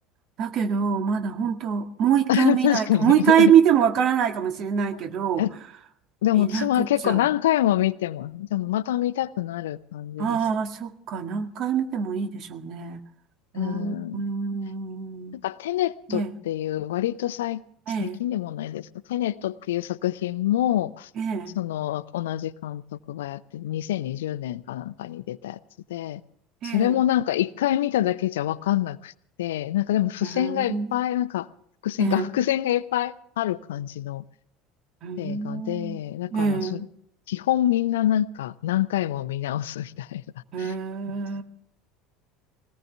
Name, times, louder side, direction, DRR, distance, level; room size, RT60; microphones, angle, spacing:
voice 1, 0.4-5.5 6.4-7.2 10.2-13.0 13.5-15.4 16.1-16.3 17.9-18.2 21.2-21.6 26.6-27.0 30.2-31.0 32.0-32.4 35.0-36.0 36.3-36.9 40.5-41.4, right 8 dB, 50° right, 1.8 m, -24 dB
voice 2, 2.3-3.5 5.4-5.5 6.2-10.4 13.5-14.2 15.4-17.6 18.0-21.1 21.6-22.8 23.1-25.6 25.9-26.2 26.6-29.1 29.4-31.5 31.8-34.2 35.2-36.8 37.3-40.2 40.6-40.7, left 12 dB, 70° left, 0.6 m, -26 dB
21.0 x 18.5 x 3.4 m
figure-of-eight pair, 70°, 0 cm